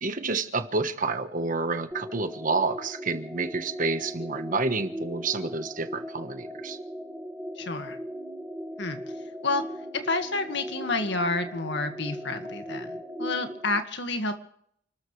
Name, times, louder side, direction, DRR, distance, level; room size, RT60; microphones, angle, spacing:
voice 1, 0.0-6.8, right 3 dB, 40° right, 8 dB, 1.3 m, -29 dB
sound 1, 1.9-13.8, equal, 10° right, 1.7 m, -38 dB
voice 2, 7.6-8.0 8.8-9.0 9.4-9.6 10.0-14.3, left 3 dB, 60° left, 7 dB, 1.9 m, -29 dB
29.5 x 13.0 x 3.3 m, 0.67 s
head